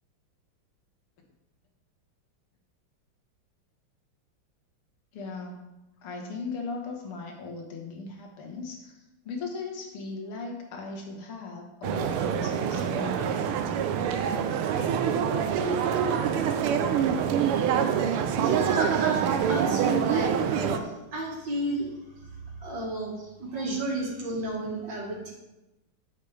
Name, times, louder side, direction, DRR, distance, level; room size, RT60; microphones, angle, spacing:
voice 1, 5.1-5.7 6.0-9.0 9.2-13.6, left 4 dB, 80° left, 2 dB, 2.3 m, -38 dB
sound 1, 11.8-20.8, right 8 dB, 85° right, 1.5 m, -26 dB
voice 2, 18.1-22.3 22.6-25.3, right 1 dB, 55° right, -2 dB, 2.4 m, -32 dB
9.6 x 7.2 x 3.3 m, 0.97 s
omnidirectional pair, 2.4 m